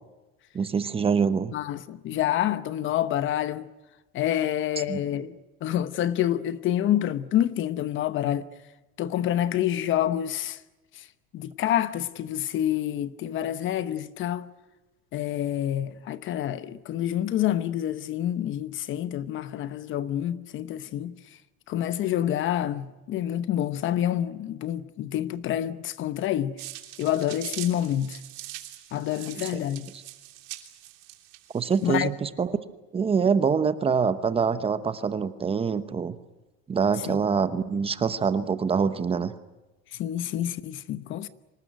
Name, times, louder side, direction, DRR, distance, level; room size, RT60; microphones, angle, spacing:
voice 1, 0.5-1.5 4.9-5.0 29.4-29.5 29.9-30.0 31.5-32.5 32.9-36.2 36.7-39.3, right 6 dB, 20° right, 1.0 m, -25 dB
voice 2, 1.5-3.7 4.1-5.4 5.6-8.5 9.0-10.6 11.3-14.5 15.1-21.1 21.7-26.6 27.0-28.2 28.9-29.9 31.8-32.1 37.1-37.2 40.0-41.3, left 11 dB, 40° left, 0.9 m, -27 dB
sound 1, 26.6-32.1, right 17 dB, 85° right, 3.0 m, -42 dB
25.5 x 19.5 x 9.2 m
cardioid pair, 165°, 30 cm